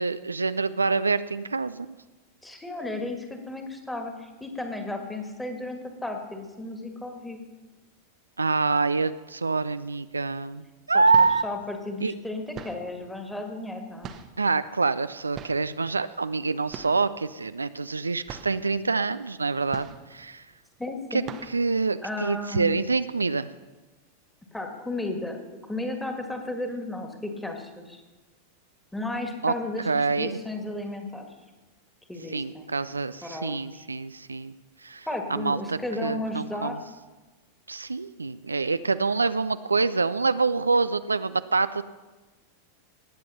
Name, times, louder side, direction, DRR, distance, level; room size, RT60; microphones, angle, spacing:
voice 1, 0.0-2.0 8.4-11.4 12.0-12.1 14.4-20.4 21.1-21.2 21.5-23.5 29.4-29.5 29.9-30.4 32.3-34.5 34.8-36.8 37.7-41.8, right 4 dB, 80° right, 13 dB, 0.4 m, -26 dB
voice 2, 2.4-7.4 10.9-14.2 20.8-21.3 22.0-22.7 24.5-28.0 28.9-31.3 32.1-32.7 33.2-33.8 35.1-36.8, left 2 dB, 5° left, 4 dB, 2.0 m, -34 dB
sound 1, 10.9-11.5 12.5-13.0 14.0-14.5 15.3-15.7 16.7-17.1 17.4-17.5 17.9-18.0 18.3-18.6 19.7-20.3 20.7-20.8 21.2-21.7, right 8 dB, 30° right, 1.0 m, -41 dB
19.0 x 7.7 x 5.7 m, 1.2 s
figure-of-eight pair, 90°, 0 cm